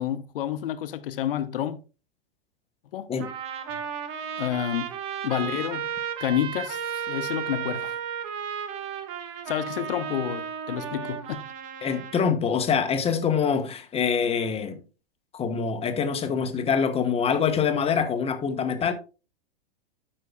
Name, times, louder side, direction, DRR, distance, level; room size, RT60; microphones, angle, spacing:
voice 1, 0.0-1.8 2.9-3.1 4.4-4.9 5.2-5.9 6.2-8.0 9.5-11.5, left 10 dB, 70° left, 0.9 m, -29 dB
Trumpet, 3.2-12.3, right 7 dB, 45° right, 1.4 m, -34 dB
voice 2, 11.8-14.8 15.3-18.9, left 6 dB, 20° left, 1.1 m, -25 dB
12.5 x 5.6 x 2.3 m
hypercardioid pair, 105°, 29 cm